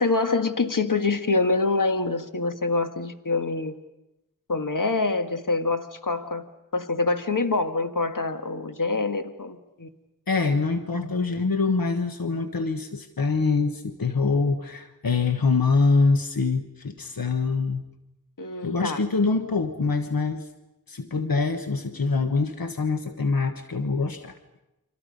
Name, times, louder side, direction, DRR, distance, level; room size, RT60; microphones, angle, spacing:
voice 1, 0.0-3.7 4.5-6.5 6.7-9.9 10.9-11.1 18.4-19.0, left 3 dB, 65° left, 7 dB, 1.7 m, -25 dB
voice 2, 10.3-17.8 18.6-20.5 20.9-24.3, left 4 dB, 85° left, 7 dB, 1.3 m, -24 dB
30.0 x 25.5 x 5.3 m, 0.95 s
wide cardioid pair, 40°, 34 cm